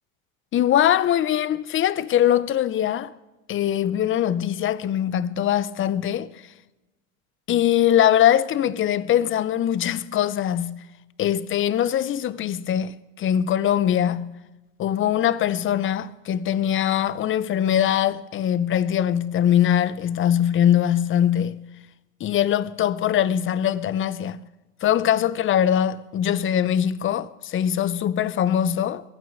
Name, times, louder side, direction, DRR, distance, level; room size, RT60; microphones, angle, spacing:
voice 1, 0.5-3.1 3.5-6.3 7.5-10.8 11.2-14.4 14.8-21.6 22.2-24.4 24.8-29.0, left 10 dB, 30° left, 0.7 m, -22 dB
22.0 x 9.3 x 6.3 m
supercardioid pair, 105°, 39 cm